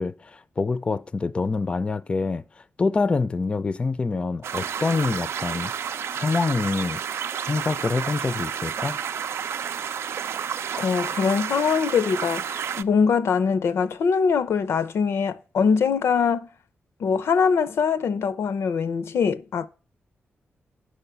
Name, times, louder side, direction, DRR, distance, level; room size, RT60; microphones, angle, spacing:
voice 1, 0.0-2.4 2.8-5.7 6.1-7.0 7.4-9.0, left 4 dB, 25° left, 0.4 m, -26 dB
sound 1, 4.4-12.8, right 8 dB, 80° right, 0.5 m, -30 dB
voice 2, 10.8-16.5 17.0-19.7, left 6 dB, 90° left, 0.7 m, -23 dB
8.8 x 6.5 x 6.8 m
wide cardioid pair, 155°, 4 cm